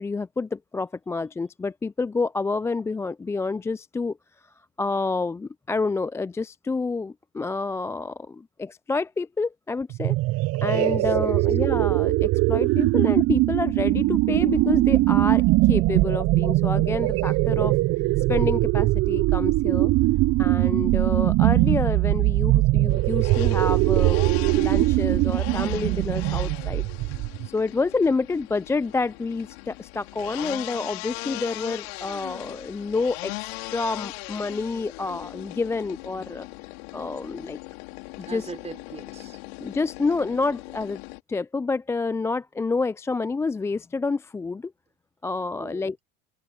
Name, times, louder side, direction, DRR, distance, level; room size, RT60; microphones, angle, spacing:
voice 1, 0.0-4.2 4.8-10.2 10.6-17.8 18.2-19.9 20.4-36.5 36.9-37.6 38.2-38.5 39.6-41.0 41.3-44.7 45.2-46.0, left 3 dB, 10° left, 0.3 m, -28 dB
sound 1, 9.9-27.5, right 19 dB, 45° right, 0.8 m, -21 dB
voice 2, 10.7-11.5 38.2-39.4 45.6-46.0, right 4 dB, 20° right, 4.8 m, -40 dB
sound 2, 22.9-41.2, left 28 dB, 65° left, 3.5 m, -39 dB
hypercardioid pair, 80°, 32 cm